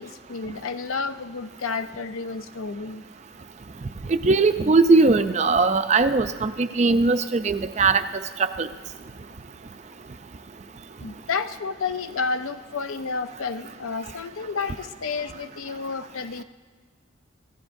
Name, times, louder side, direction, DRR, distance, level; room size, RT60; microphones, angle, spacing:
voice 1, 0.0-3.0 11.0-16.4, left 4 dB, 90° left, 10 dB, 0.6 m, -31 dB
voice 2, 4.1-8.0 8.6-8.7, right 3 dB, 35° right, 10 dB, 0.4 m, -19 dB
27.0 x 14.5 x 2.6 m, 1.5 s
head